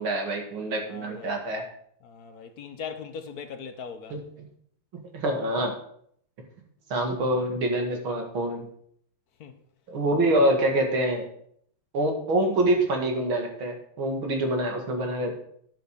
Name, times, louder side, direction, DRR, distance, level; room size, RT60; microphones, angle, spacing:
voice 1, 0.0-1.6 4.1-4.2 5.1-5.7 6.9-8.6 9.9-11.2 11.9-15.3, right 1 dB, 75° right, 2.8 m, -25 dB
voice 2, 0.8-1.4 2.0-4.2 9.4-9.6, left 6 dB, 55° left, 1.3 m, -40 dB
11.0 x 7.5 x 5.2 m
omnidirectional pair, 2.2 m